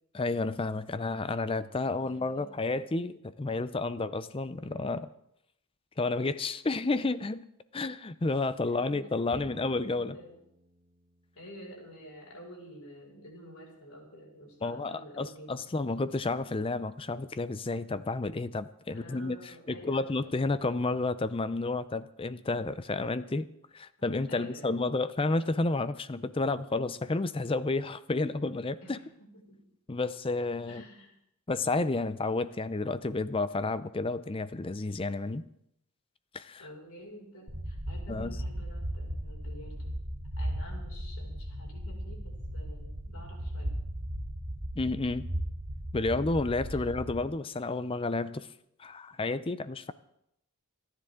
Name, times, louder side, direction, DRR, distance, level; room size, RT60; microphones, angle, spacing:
voice 1, 0.1-5.1 6.0-7.5 7.7-10.2 14.6-23.5 23.7-29.0 29.9-30.8 31.5-35.4 36.3-36.7 38.1-38.4 44.8-45.3 45.9-48.5 48.8-49.9, left 3 dB, 25° left, 14 dB, 0.5 m, -31 dB
voice 2, 8.6-10.4 11.3-15.6 18.9-20.4 24.0-24.9 28.8-29.6 30.7-31.1 36.6-39.9 40.4-43.7 46.8-46.9, equal, 85° left, -1 dB, 5.5 m, -49 dB
Bowed string instrument, 9.3-12.7, right 1 dB, 35° right, 2.9 m, -56 dB
sound 1, 37.5-47.2, equal, 55° right, 2.9 m, -37 dB
28.5 x 10.5 x 3.7 m, 0.77 s
head